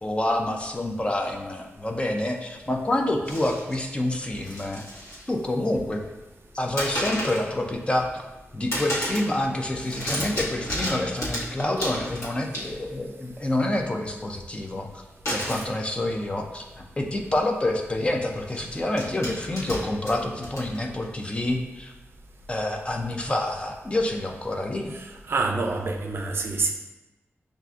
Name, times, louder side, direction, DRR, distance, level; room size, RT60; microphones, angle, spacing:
voice 1, 0.0-4.8 5.3-6.0 6.5-8.1 8.5-15.0 15.3-21.9 22.5-24.9, left 1 dB, 25° left, 2 dB, 0.4 m, -27 dB
sound 1, 3.2-3.8 4.3-5.2 5.5-6.1 6.8-7.5 7.9-8.4 8.7-9.3 9.6-13.0 15.3-15.7 16.7-16.8 17.1-17.3 18.4-21.0, equal, 80° left, 1.1 m, -33 dB
voice 2, 24.9-26.7, right 3 dB, 60° right, 3 dB, 0.4 m, -27 dB
6.6 x 2.5 x 2.4 m, 1.0 s
wide cardioid pair, 125°, 5 cm